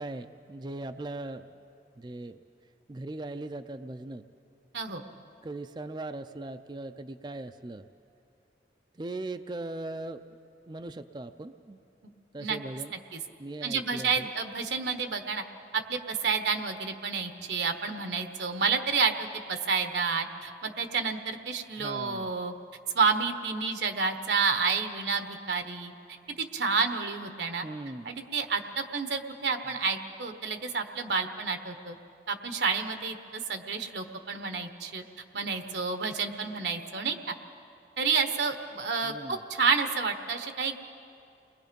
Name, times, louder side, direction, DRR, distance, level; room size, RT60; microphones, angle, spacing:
voice 1, 0.0-1.5 2.0-2.4 2.9-4.2 5.4-7.9 8.9-10.3 10.7-11.8 12.3-13.0 13.4-14.3 21.8-22.3 27.6-28.1 39.0-39.4, right 2 dB, 25° right, 9 dB, 0.4 m, -39 dB
voice 2, 13.6-15.4 15.7-22.5 22.9-25.9 26.4-27.7 28.0-31.9 32.3-35.0 35.3-37.4 38.0-40.7, right 5 dB, 80° right, 6 dB, 1.2 m, -30 dB
30.0 x 21.0 x 5.3 m, 2.6 s
head